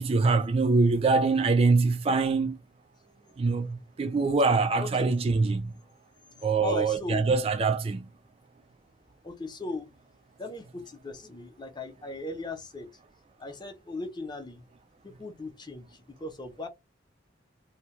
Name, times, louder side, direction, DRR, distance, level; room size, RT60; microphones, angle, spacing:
voice 1, 0.0-2.6 3.4-5.7 6.4-8.1, right 4 dB, 30° right, 0.3 m, -24 dB
voice 2, 4.8-5.1 6.6-7.3 9.2-9.9 10.4-12.9 13.4-14.6 15.0-16.7, left 3 dB, 25° left, 0.6 m, -37 dB
2.7 x 2.2 x 3.1 m
head